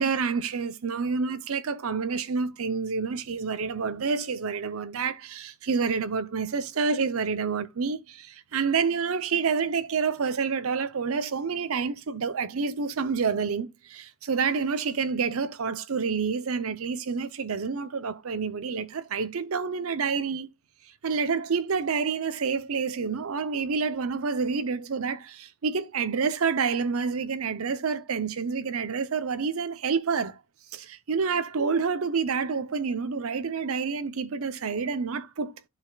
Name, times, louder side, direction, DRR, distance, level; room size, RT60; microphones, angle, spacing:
voice 1, 0.0-20.5 21.0-30.4 30.7-35.7, right 5 dB, 85° right, 0.6 m, -28 dB
11.5 x 4.1 x 2.3 m
head